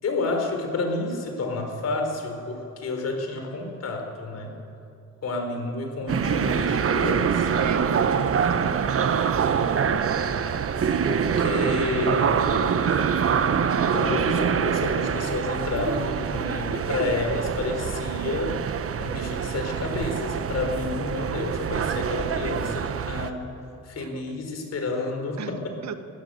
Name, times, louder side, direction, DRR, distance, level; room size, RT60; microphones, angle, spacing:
voice 1, 0.0-4.5 5.2-7.6 11.0-12.4 13.9-18.6 19.0-23.5 23.8-25.8, left 3 dB, 55° left, 4 dB, 4.6 m, -30 dB
sound 1, 6.1-23.3, right 7 dB, 50° right, 1.1 m, -25 dB
voice 2, 7.6-8.9 9.3-9.5 12.4-12.5 24.0-24.2 25.4-25.5 25.8-25.9, right 8 dB, 65° right, 10 dB, 1.4 m, -35 dB
22.0 x 16.5 x 7.9 m, 2.8 s
cardioid pair, 90°, 30 cm